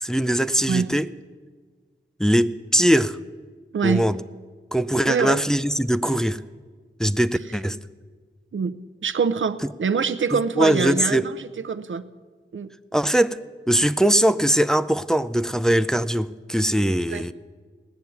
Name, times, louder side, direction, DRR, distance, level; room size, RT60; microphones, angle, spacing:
voice 1, 0.0-1.1 2.2-3.2 3.8-4.1 4.7-6.4 7.0-7.8 10.3-11.2 12.9-13.4 13.7-17.3, equal, 5° left, 12 dB, 0.4 m, -21 dB
voice 2, 3.7-4.2 5.0-5.4 8.5-12.1 12.5-12.7 17.1-17.2, right 5 dB, 70° right, 14 dB, 0.6 m, -25 dB
18.0 x 7.0 x 9.3 m, 1.5 s
wide cardioid pair, 85°, 21 cm